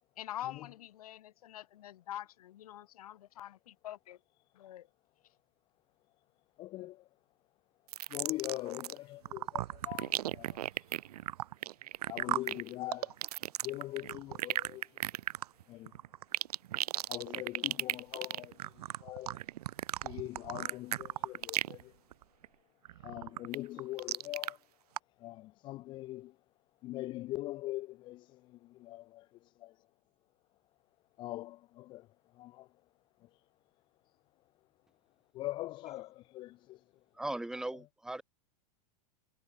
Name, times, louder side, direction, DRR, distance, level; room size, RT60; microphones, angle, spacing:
voice 1, 0.2-4.2 4.5-4.9, left 12 dB, 70° left, 5.6 m, -45 dB
voice 2, 6.6-7.1 8.1-10.8 12.1-13.2 13.6-15.0 15.7-15.9 17.1-19.4 20.0-21.9 23.0-24.6 25.2-26.3 26.8-29.2 31.2-32.1 32.3-32.7 33.2-33.3 35.3-36.8, left 17 dB, 25° left, 1.7 m, -42 dB
sound 1, 7.9-9.0 9.2-21.8 22.1-22.5 22.9-24.5 25.0-25.1, right 13 dB, 80° right, 0.8 m, -35 dB
voice 3, 37.1-38.2, right 1 dB, 5° right, 4.4 m, -38 dB
supercardioid pair, 175°, 20 cm